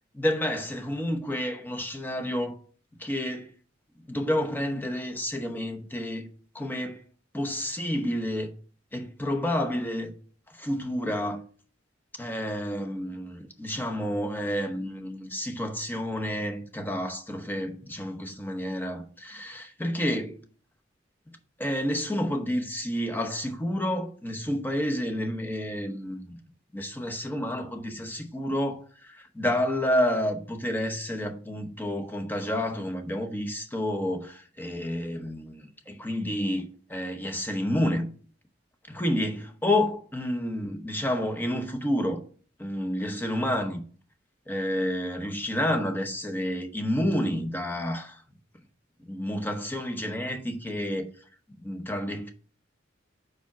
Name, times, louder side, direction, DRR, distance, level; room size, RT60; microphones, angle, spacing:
voice 1, 0.1-2.6 3.0-3.5 4.1-6.3 6.5-7.0 7.3-8.5 8.9-10.1 10.5-11.4 12.2-20.4 21.6-26.4 26.7-38.1 38.9-42.2 42.6-43.8 44.5-48.2 49.0-51.1 51.5-52.3, left 1 dB, 10° left, 0.8 m, -30 dB
5.0 x 4.8 x 5.7 m
head